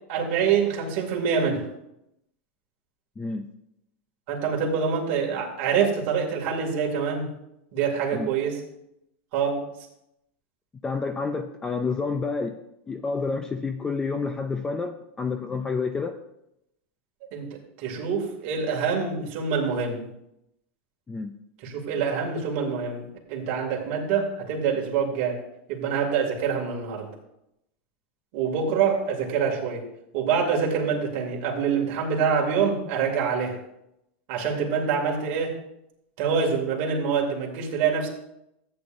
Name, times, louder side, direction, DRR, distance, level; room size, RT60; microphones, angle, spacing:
voice 1, 0.1-1.6 4.3-7.3 7.7-8.6 9.3-9.6 17.3-20.1 21.6-25.4 25.7-27.1 28.3-29.8 30.1-33.6 34.3-35.5 36.2-38.1, right 6 dB, 45° right, 0 dB, 2.4 m, -25 dB
voice 2, 3.2-3.5 8.1-8.3 10.8-12.6 12.9-16.2 21.1-21.3, left 4 dB, 10° left, 7 dB, 0.4 m, -29 dB
14.5 x 8.9 x 2.6 m, 0.83 s
supercardioid pair, 165°, 7 cm